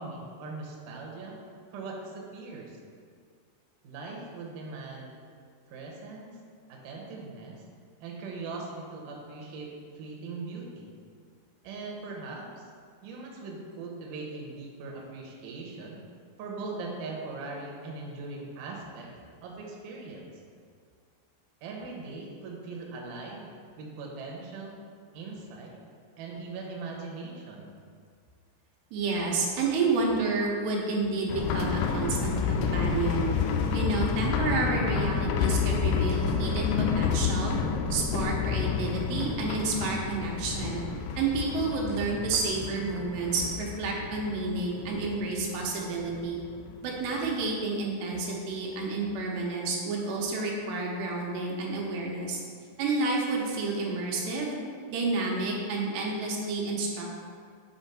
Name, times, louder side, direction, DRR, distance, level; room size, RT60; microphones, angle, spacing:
voice 1, 0.0-1.4 1.7-2.8 3.8-5.2 5.7-6.4 6.7-7.6 8.0-10.9 11.6-12.7 13.0-16.0 16.4-19.1 19.4-20.3 21.6-23.5 23.8-24.8 25.1-25.7 26.2-27.8, right 3 dB, 65° right, -1 dB, 2.3 m, -40 dB
voice 2, 28.9-33.3 33.7-37.6 37.9-40.8 41.2-46.4 46.8-52.4 52.8-54.6 54.9-57.2, right 3 dB, 85° right, -2 dB, 3.1 m, -30 dB
sound 1, 31.3-46.8 47.0-47.1 47.5-47.6, left 6 dB, 80° left, 2.3 m, -29 dB
8.0 x 4.3 x 5.7 m, 2.1 s
omnidirectional pair, 4.9 m